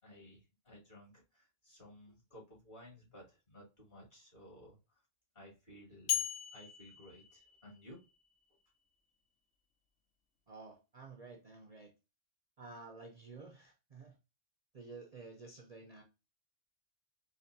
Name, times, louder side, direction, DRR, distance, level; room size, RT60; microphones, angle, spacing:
voice 1, 0.0-5.0 5.3-6.2 6.5-8.0, equal, 40° left, 2.4 m, -56 dB
sound 1, 6.1-8.1, left 11 dB, 80° left, 1.1 m, -38 dB
voice 2, 10.5-11.9 12.6-14.2 14.7-16.0, right 3 dB, 40° right, 0.6 m, -52 dB
4.3 x 2.9 x 2.6 m
omnidirectional pair, 1.2 m